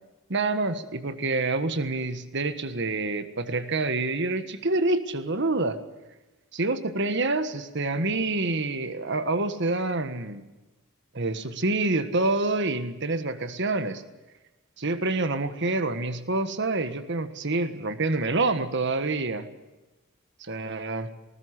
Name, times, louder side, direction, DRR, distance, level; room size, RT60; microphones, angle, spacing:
voice 1, 0.3-5.8 6.5-10.4 11.1-14.0 14.8-19.5 20.4-21.1, right 2 dB, 55° right, 10 dB, 1.5 m, -27 dB
20.0 x 19.5 x 8.2 m, 1.1 s
head